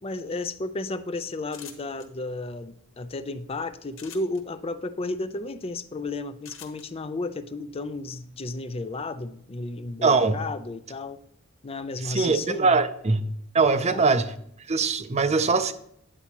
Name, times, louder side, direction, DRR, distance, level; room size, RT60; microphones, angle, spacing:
voice 1, 0.0-11.2 11.6-12.8 13.8-14.0, left 2 dB, 30° left, 12 dB, 0.5 m, -33 dB
sound 1, 1.5-2.1 3.9-4.4 6.4-6.8, left 8 dB, 70° left, 1.4 m, -44 dB
voice 2, 10.0-10.4 12.0-13.2 13.5-14.3 14.7-15.7, right 4 dB, 30° right, 11 dB, 0.6 m, -22 dB
9.8 x 8.2 x 2.9 m, 0.69 s
head